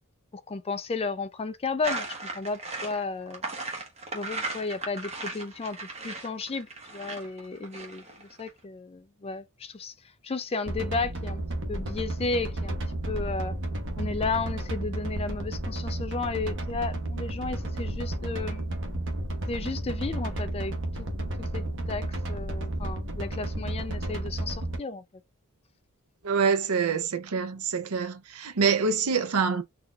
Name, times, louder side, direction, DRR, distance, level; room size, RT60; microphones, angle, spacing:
voice 1, 0.3-3.4 4.1-5.8 6.0-6.7 6.9-9.9 10.2-11.4 11.7-12.8 13.1-13.6 14.0-18.8 19.5-21.1 21.5-25.0, left 3 dB, 25° left, 0.4 m, -33 dB
sound 1, 1.8-8.5, right 3 dB, 30° right, 1.1 m, -36 dB
sound 2, 10.7-24.8, right 1 dB, 60° right, 1.0 m, -32 dB
voice 2, 26.2-29.6, right 5 dB, 80° right, 0.6 m, -26 dB
4.1 x 2.8 x 2.4 m
head